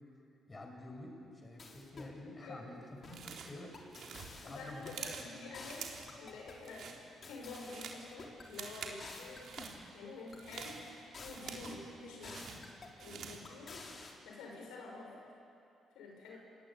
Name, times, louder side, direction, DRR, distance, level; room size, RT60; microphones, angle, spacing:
voice 1, 0.5-4.9 5.2-5.3, left 2 dB, 25° left, 1 dB, 5.7 m, -49 dB
sound 1, 1.6-2.2 3.0-3.3 3.7-5.1 5.5-6.6 7.2-8.5 9.0-9.8 10.3-11.8 12.2-13.0 13.4-14.1, left 3 dB, 40° left, 4.2 m, -51 dB
voice 2, 2.4-2.8 4.4-5.8 6.2-9.5 9.9-10.8 11.2-12.5 13.0-13.8 14.2-15.2 15.9-16.4, left 3 dB, 90° left, -1 dB, 6.4 m, -48 dB
sound 2, 3.1-3.6 3.9-5.3 5.7-6.2 6.5-7.0 7.4-8.0 8.4-9.0 9.3-9.8 10.3-11.9 12.2-13.5, right 6 dB, 70° right, 3.5 m, -47 dB
28.0 x 21.0 x 8.7 m, 2.7 s
cardioid pair, 90°, 0 cm